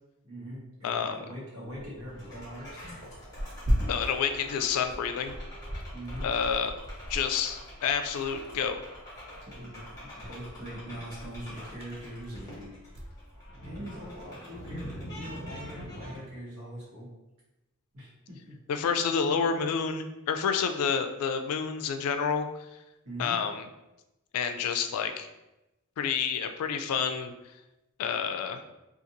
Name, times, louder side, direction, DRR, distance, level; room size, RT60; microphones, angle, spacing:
voice 1, 0.2-2.8 3.8-3.9 5.9-6.3 9.5-12.7 13.6-17.1 17.9-18.6 23.0-23.4, equal, 70° right, -6 dB, 1.1 m, -42 dB
voice 2, 0.8-1.2 3.9-5.4 6.2-6.8 7.1-8.8 18.7-22.5 23.2-23.7 24.3-25.3 26.0-27.3 28.0-28.6, left 6 dB, 80° left, 8 dB, 0.3 m, -29 dB
Tearing, 1.6-14.3, equal, 25° right, 0.3 m, -38 dB
sound 1, 2.1-16.2, equal, 15° left, 1.0 m, -45 dB
2.6 x 2.4 x 2.7 m, 0.96 s
head